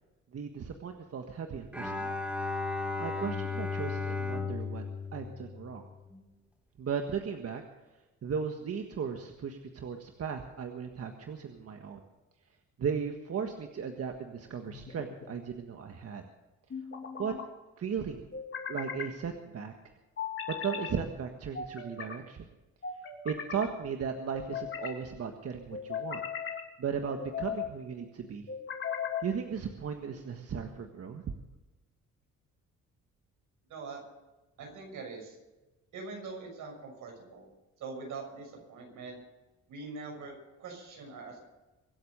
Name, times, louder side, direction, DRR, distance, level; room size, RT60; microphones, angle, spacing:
voice 1, 0.3-2.2 3.0-4.8 5.1-5.9 6.8-7.6 8.2-12.0 12.8-16.3 17.2-17.3 17.8-18.3 18.7-19.7 20.6-22.4 23.2-26.2 26.8-28.5 29.2-31.2, right 6 dB, 50° right, 4 dB, 1.6 m, -36 dB
Bowed string instrument, 1.7-6.2, left 4 dB, 5° right, 4.6 m, -35 dB
sound 1, 14.7-15.3 16.7-17.5 18.3-19.1 20.2-20.9 21.5-22.2 22.8-23.7 24.3-25.0 25.7-26.6 27.2-27.7 28.5-29.3, left 7 dB, 40° left, 2.8 m, -38 dB
voice 2, 33.7-34.0 34.6-35.4 35.9-37.5 37.8-39.2 39.7-41.4, right 4 dB, 80° right, 1 dB, 6.4 m, -43 dB
24.0 x 8.1 x 6.6 m, 1.1 s
cardioid pair, 90°, 30 cm